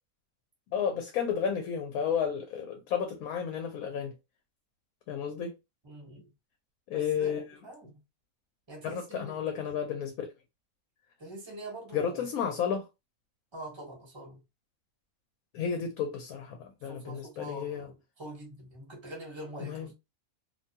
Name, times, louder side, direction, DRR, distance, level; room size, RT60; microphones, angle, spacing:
voice 1, 0.7-4.1 5.1-5.5 6.9-7.4 8.8-10.3 11.9-12.9 15.5-17.9 19.6-19.9, left 7 dB, 75° left, 1.0 m, -32 dB
voice 2, 5.8-6.3 6.9-8.0 8.7-9.3 9.6-9.8 11.2-12.2 13.5-14.4 16.8-19.9, right 1 dB, 20° right, 1.0 m, -44 dB
2.7 x 2.2 x 2.7 m
omnidirectional pair, 1.5 m